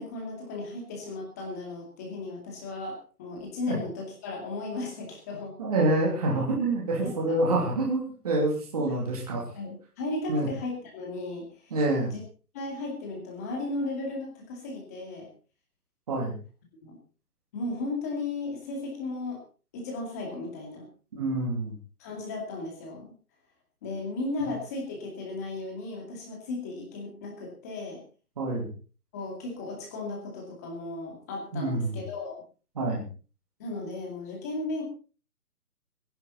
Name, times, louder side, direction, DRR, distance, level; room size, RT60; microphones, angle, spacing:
voice 1, 0.0-5.5 7.0-7.4 8.8-8.9 9.5-11.7 12.1-12.2 12.5-15.3 16.8-17.0 17.5-19.4 19.7-20.9 22.0-23.1 23.8-28.0 29.1-32.4 33.6-34.8, left 2 dB, 10° left, 0 dB, 2.3 m, -35 dB
voice 2, 5.6-9.4 10.3-10.5 11.7-12.1 16.1-16.4 21.1-21.7 28.4-28.7 31.5-32.0 32.8-33.1, right 2 dB, 25° right, -2 dB, 2.9 m, -27 dB
22.0 x 11.0 x 4.1 m, 0.37 s
hypercardioid pair, 180°, 46 cm